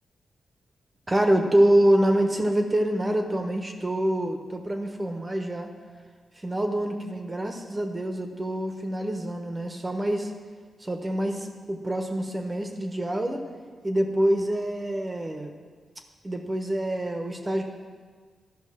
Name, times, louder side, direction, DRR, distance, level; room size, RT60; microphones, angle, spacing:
voice 1, 1.1-5.7 6.4-10.3 10.8-13.4 13.8-15.5 16.2-17.6, right 1 dB, 25° right, 4 dB, 1.2 m, -26 dB
12.0 x 5.7 x 5.9 m, 1.5 s
cardioid pair, 65°, 0 cm